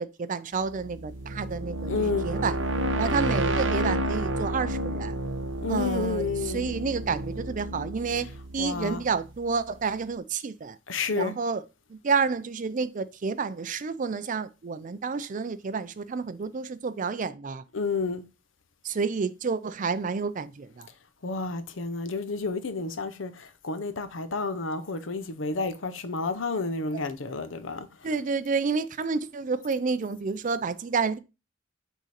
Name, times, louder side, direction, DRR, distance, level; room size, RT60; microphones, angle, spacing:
voice 1, 0.0-2.6 3.0-5.2 5.7-8.3 8.5-10.8 11.1-11.6 11.9-17.6 18.8-20.9 26.9-27.1 28.0-31.2, right 5 dB, 40° right, 0.4 m, -30 dB
sound 1, 0.7-9.5, right 1 dB, 70° right, 0.9 m, -30 dB
voice 2, 1.9-2.3 5.6-6.7 8.6-9.0 10.9-11.4 17.7-18.2 21.2-27.9, left 4 dB, 85° left, 0.8 m, -30 dB
6.1 x 3.7 x 4.3 m
head